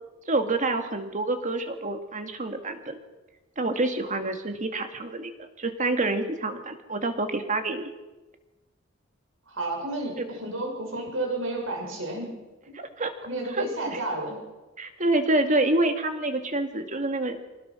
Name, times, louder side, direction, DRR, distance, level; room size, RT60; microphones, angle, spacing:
voice 1, 0.3-3.0 3.6-7.9 10.2-10.3 12.7-13.1 13.6-14.0 14.8-17.4, right 2 dB, 40° right, 6 dB, 2.2 m, -27 dB
voice 2, 9.5-12.4 13.2-14.4, right 2 dB, 80° right, 1 dB, 6.9 m, -31 dB
25.5 x 18.5 x 6.2 m, 1.1 s
head